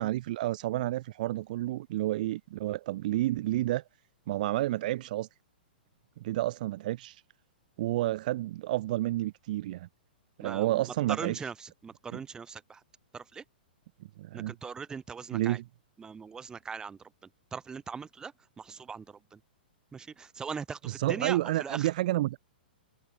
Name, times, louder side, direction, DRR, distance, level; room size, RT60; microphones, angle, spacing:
voice 1, 0.0-3.8 4.3-5.3 6.2-7.2 7.8-9.9 10.4-11.3 14.2-14.5 15.3-15.6 20.9-22.4, right 16 dB, 55° right, 0.4 m, -30 dB
voice 2, 10.4-12.8 13.1-13.4 14.3-15.6 16.0-19.4 19.9-21.9, right 5 dB, 15° right, 1.4 m, -40 dB
hypercardioid pair, 125°, 5 cm